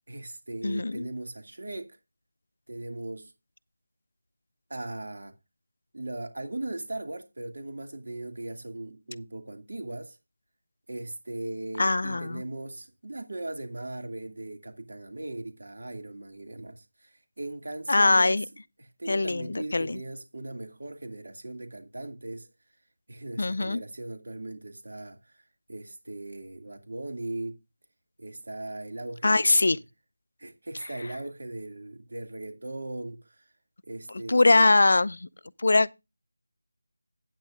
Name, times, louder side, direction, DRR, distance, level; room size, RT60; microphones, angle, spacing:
voice 1, 0.1-2.0 2.7-3.3 4.7-5.3 5.9-10.2 10.9-18.4 18.8-22.5 23.1-25.4 25.7-27.5 28.2-29.8 30.4-33.4 33.9-34.7, right 2 dB, 60° right, 2.3 m, -38 dB
voice 2, 0.6-1.1 11.8-12.4 17.9-18.4 19.1-20.0 23.4-23.8 29.2-29.8 34.1-35.3 35.6-36.0, left 2 dB, 55° left, 0.5 m, -22 dB
13.5 x 9.1 x 2.5 m
figure-of-eight pair, 175°, 0 cm